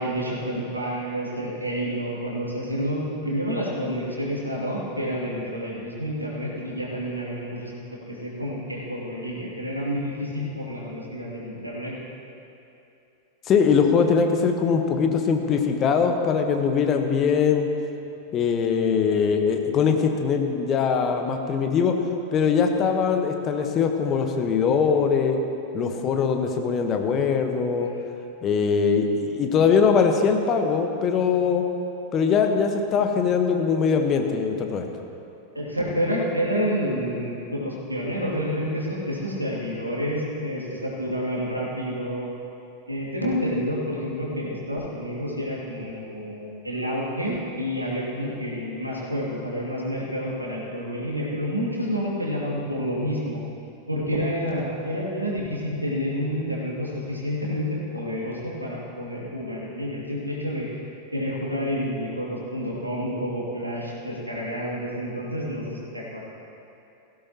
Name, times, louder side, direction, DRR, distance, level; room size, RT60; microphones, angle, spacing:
voice 1, 0.0-7.7 8.1-11.9 35.5-42.3 42.9-53.4 53.9-60.7 61.1-66.2, equal, 85° right, -4 dB, 2.5 m, -29 dB
voice 2, 13.5-17.7 18.3-22.0 22.3-25.4 25.7-27.9 28.4-31.6 32.1-34.9, left 6 dB, 30° left, 4 dB, 1.2 m, -22 dB
18.0 x 15.5 x 3.0 m, 2.8 s
figure-of-eight pair, 90°, 0 cm